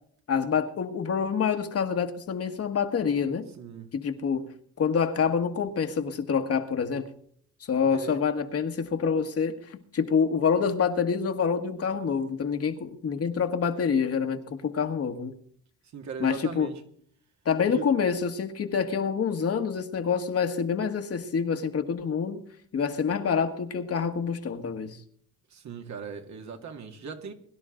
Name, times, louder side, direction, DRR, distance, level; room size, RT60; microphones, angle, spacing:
voice 1, 0.3-3.5 3.9-4.5 4.8-7.1 7.7-15.3 16.2-16.7 17.5-22.4 22.7-25.0, left 6 dB, 50° left, 1.7 m, -27 dB
voice 2, 3.5-3.9 7.9-8.2 15.9-16.8 17.7-17.9 25.5-27.3, right 6 dB, 65° right, 2.2 m, -39 dB
22.5 x 11.5 x 3.9 m
cardioid pair, 90°, 30 cm